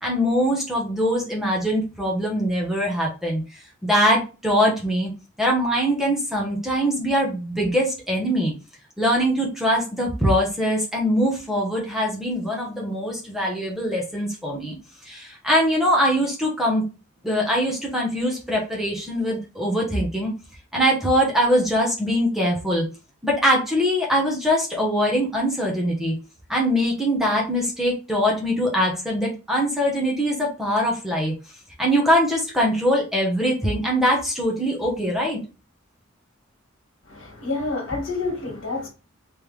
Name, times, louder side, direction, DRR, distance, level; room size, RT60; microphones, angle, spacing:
voice 1, 0.0-3.4 3.8-5.1 5.4-8.5 9.0-14.7 15.1-16.8 17.2-20.3 20.7-22.8 23.2-26.1 26.5-31.3 31.8-35.4, equal, ahead, 1.0 m, -22 dB
voice 2, 37.1-38.9, left 3 dB, 75° left, 1.6 m, -28 dB
3.5 x 3.2 x 3.2 m
head